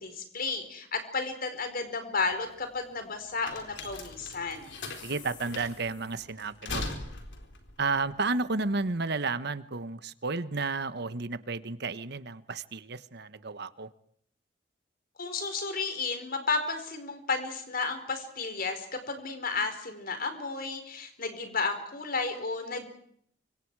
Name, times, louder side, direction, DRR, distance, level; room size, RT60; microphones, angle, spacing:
voice 1, 0.0-4.7 15.2-22.9, left 4 dB, 55° left, 7 dB, 4.7 m, -33 dB
sound 1, 2.2-9.0, left 3 dB, 70° left, 4.2 m, -41 dB
voice 2, 5.0-6.9 7.8-13.9, right 3 dB, 60° right, 13 dB, 1.3 m, -32 dB
29.5 x 25.5 x 4.8 m, 0.66 s
head